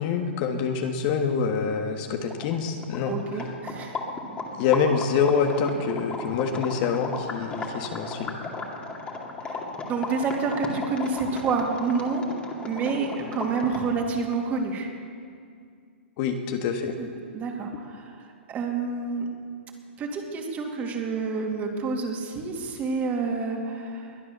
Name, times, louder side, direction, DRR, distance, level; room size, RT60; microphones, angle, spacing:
voice 1, 0.0-3.2 4.6-8.4 16.2-16.9, left 6 dB, 40° left, 4 dB, 1.6 m, -26 dB
sound 1, 2.3-14.0, left 3 dB, 15° left, 2.4 m, -35 dB
voice 2, 3.0-4.0 9.4-12.3 12.6-14.9 17.0-17.1 17.3-19.2 20.0-24.2, right 4 dB, 25° right, 1 dB, 2.7 m, -29 dB
21.5 x 10.0 x 6.8 m, 2.2 s
hypercardioid pair, 130°, 7 cm